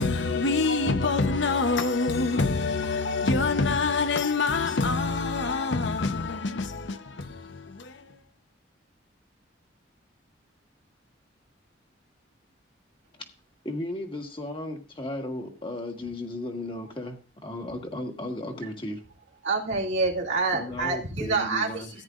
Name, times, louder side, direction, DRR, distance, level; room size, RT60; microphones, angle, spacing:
voice 1, 0.0-8.2, left 3 dB, 70° left, 0.8 m, -26 dB
voice 2, 13.6-19.0 20.5-21.9, left 1 dB, 25° left, 1.6 m, -35 dB
voice 3, 19.4-21.9, right 3 dB, 70° right, 2.1 m, -27 dB
14.0 x 9.9 x 2.5 m
head